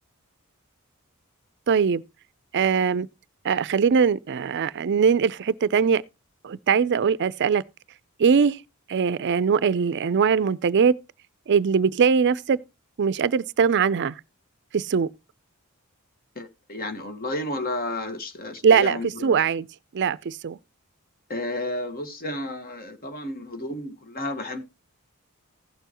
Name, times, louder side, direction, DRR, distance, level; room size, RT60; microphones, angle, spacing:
voice 1, 1.7-2.0 2.5-3.1 3.4-6.0 6.4-7.6 8.2-8.6 8.9-10.9 11.5-12.6 13.0-14.1 14.7-15.1 18.6-19.7 19.9-20.6, right 6 dB, 55° right, 0.4 m, -21 dB
voice 2, 16.3-19.4 21.3-24.6, left 1 dB, 45° left, 1.4 m, -32 dB
16.0 x 6.9 x 2.9 m
head